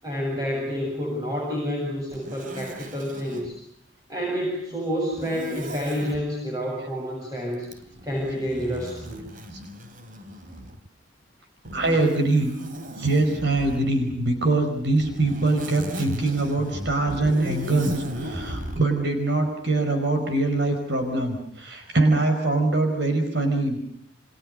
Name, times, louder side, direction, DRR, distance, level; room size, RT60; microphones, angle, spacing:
voice 1, 0.0-3.6 4.1-7.7 8.0-9.2, equal, 20° right, -1 dB, 7.9 m, -29 dB
Zipper (clothing), 2.1-3.5 5.1-6.2 7.6-10.9 11.6-13.9 14.8-18.8, right 1 dB, 50° right, 2.9 m, -36 dB
voice 2, 11.7-12.5 13.0-23.8, right 2 dB, 65° right, 5 dB, 5.4 m, -23 dB
29.5 x 26.5 x 6.6 m, 0.66 s
head